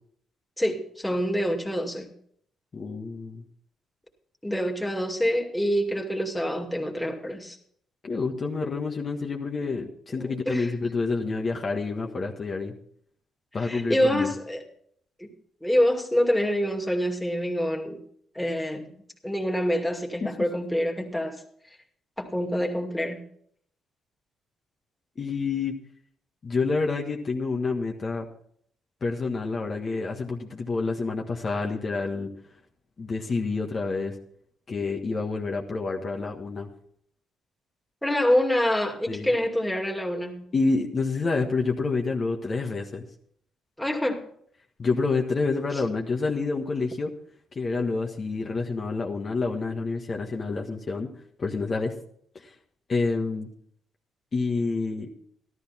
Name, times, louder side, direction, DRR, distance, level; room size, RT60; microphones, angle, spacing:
voice 1, 0.6-2.1 4.4-7.6 10.1-10.7 13.6-14.6 15.2-15.3 15.6-18.0 18.3-21.4 22.2-23.2 38.0-40.5 43.8-44.3, equal, 5° left, 1 dB, 2.4 m, -26 dB
voice 2, 2.7-3.4 8.0-12.7 13.5-14.3 20.2-20.3 25.2-25.8 26.4-28.3 29.0-32.3 33.0-34.1 34.7-36.7 39.1-39.3 40.5-43.0 44.8-47.1 47.5-51.1 51.4-51.9 52.3-52.5 52.9-53.5 54.3-55.1, left 4 dB, 40° left, 1 dB, 1.5 m, -28 dB
13.5 x 13.0 x 4.3 m, 0.64 s
cardioid pair, 90°, 0 cm